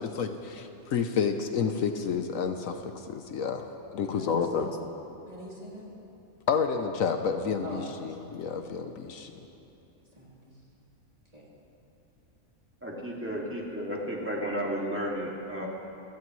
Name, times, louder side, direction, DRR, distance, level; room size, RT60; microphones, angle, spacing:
voice 1, 0.0-4.8 6.5-9.4, left 6 dB, 70° left, 6 dB, 1.2 m, -30 dB
voice 2, 4.0-4.7 5.3-5.9 7.6-7.8 8.1-8.2 10.1-10.6 11.3-11.5, equal, 25° right, -6 dB, 3.4 m, -44 dB
voice 3, 12.8-15.7, equal, 10° right, -3 dB, 2.3 m, -33 dB
26.5 x 17.0 x 3.2 m, 2.9 s
omnidirectional pair, 1.5 m